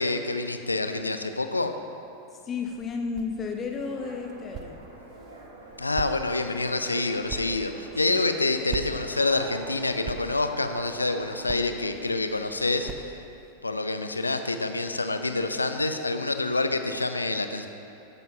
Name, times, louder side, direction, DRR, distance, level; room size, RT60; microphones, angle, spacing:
voice 1, 0.0-1.7 5.8-13.1 13.6-17.7, left 2 dB, 80° left, 8 dB, 0.6 m, -27 dB
voice 2, 2.5-4.8 8.1-8.2, left 5 dB, 25° left, 3 dB, 0.8 m, -32 dB
sound 1, 2.6-13.5, right 6 dB, 30° right, 0.6 m, -43 dB
sound 2, 3.8-11.8, right 1 dB, 75° right, 2.2 m, -46 dB
14.5 x 11.0 x 2.8 m, 2.9 s
figure-of-eight pair, 90°, 0 cm